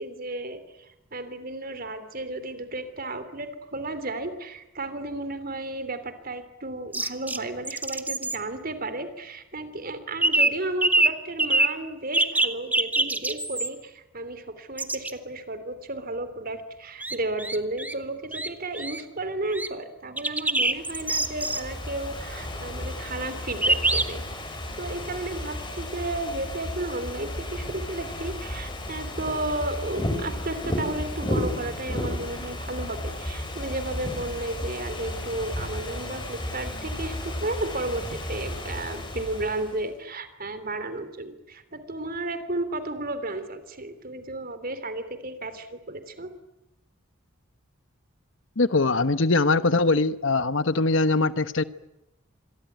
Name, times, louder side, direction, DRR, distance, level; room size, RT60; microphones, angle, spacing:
voice 1, 0.0-24.2 24.8-46.3, right 2 dB, 45° right, 11 dB, 3.2 m, -33 dB
sound 1, 6.9-7.4 7.6-8.4 10.2-10.5 10.8-11.1 11.4-11.7 12.1-13.7 14.8-15.1 17.0-17.9 18.3-18.5 18.7-19.0 19.5-19.7 20.2-21.6 23.6-24.0, right 2 dB, 10° right, 1.4 m, -24 dB
Ocean / Fireworks, 20.6-39.9, left 1 dB, 25° left, 6.1 m, -33 dB
voice 2, 48.6-51.6, left 3 dB, 65° left, 13 dB, 1.1 m, -22 dB
27.0 x 22.5 x 9.4 m, 0.89 s
head